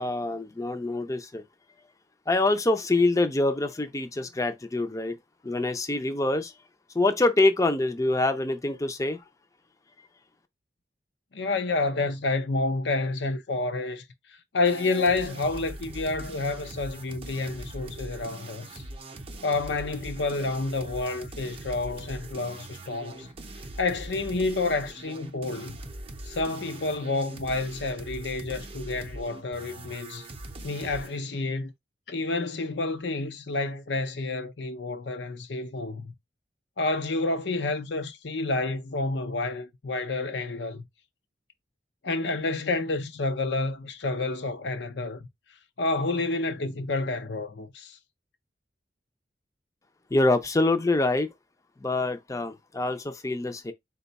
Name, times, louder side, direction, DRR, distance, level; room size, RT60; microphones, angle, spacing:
voice 1, 0.0-1.4 2.3-5.2 5.4-6.5 6.9-9.2 50.1-51.3 51.8-53.7, left 2 dB, 20° left, 0.5 m, -25 dB
voice 2, 11.3-14.0 14.3-18.8 19.4-23.3 23.8-25.8 26.2-30.3 30.6-31.7 32.1-36.1 36.8-40.9 42.0-45.3 45.8-48.0, left 3 dB, 75° left, 0.6 m, -29 dB
sound 1, 14.7-31.2, right 2 dB, 30° right, 0.6 m, -42 dB
4.3 x 2.3 x 3.9 m
head